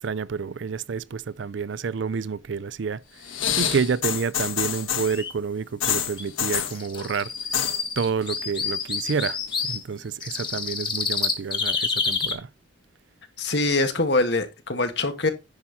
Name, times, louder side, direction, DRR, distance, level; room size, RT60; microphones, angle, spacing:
voice 1, 0.0-3.0 3.6-7.3 8.0-9.4 9.6-12.5, right 5 dB, 65° right, 0.4 m, -29 dB
sound 1, 3.2-5.2 5.8-6.8 7.4-7.8 8.1-8.6 8.9-9.7 10.5-10.6, left 9 dB, 90° left, 1.5 m, -27 dB
sound 2, 5.0-5.3 5.8-5.9 6.2-6.3 6.7-9.8 10.2-12.3, left 5 dB, 25° left, 1.8 m, -28 dB
voice 2, 13.4-15.3, left 2 dB, 55° left, 1.8 m, -23 dB
10.5 x 5.6 x 4.2 m
head